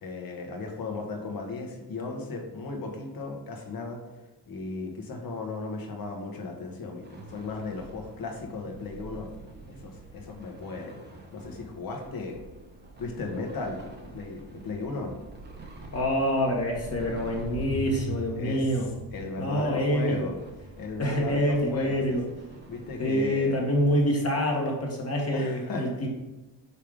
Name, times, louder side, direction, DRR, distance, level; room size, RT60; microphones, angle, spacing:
voice 1, 0.0-4.0 4.5-9.3 9.7-11.0 11.3-12.4 13.0-15.2 18.3-18.7 19.1-20.3 20.8-22.2 22.7-23.6 25.3-25.9, left 3 dB, 50° left, 2 dB, 1.4 m, -36 dB
sound 1, 7.0-24.1, right 2 dB, 20° right, 0.9 m, -44 dB
voice 2, 15.9-18.9 19.4-20.3 21.0-22.2 23.0-26.1, equal, 30° left, -1 dB, 1.5 m, -26 dB
5.6 x 3.5 x 5.0 m, 1.1 s
cardioid pair, 95°, 45 cm